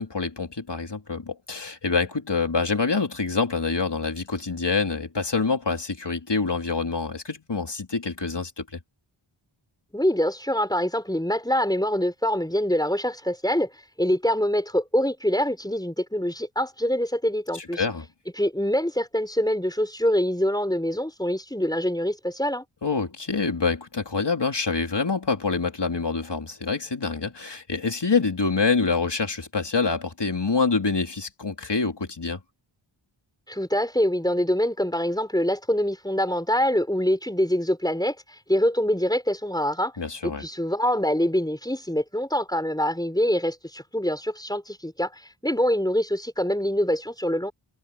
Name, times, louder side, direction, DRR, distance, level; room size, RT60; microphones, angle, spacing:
voice 1, 0.0-8.8 17.5-18.1 22.8-32.4 40.0-40.4, left 4 dB, 60° left, 3.3 m, -26 dB
voice 2, 9.9-13.7 14.0-17.8 18.4-22.6 33.5-39.9 40.2-47.5, equal, 10° left, 4.1 m, -25 dB
wide cardioid pair, 65°, 48 cm